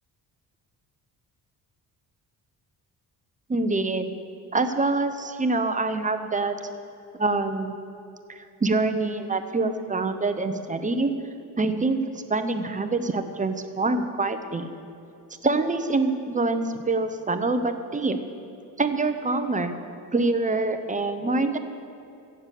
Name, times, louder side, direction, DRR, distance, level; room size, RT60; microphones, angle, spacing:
voice 1, 3.5-4.1 4.5-6.5 7.2-7.8 8.3-11.1 11.6-12.0 12.3-14.7 15.4-18.2 18.8-19.7 20.1-21.6, right 3 dB, 20° right, 8 dB, 0.8 m, -25 dB
15.0 x 6.8 x 8.4 m, 2.6 s
cardioid pair, 120°, 39 cm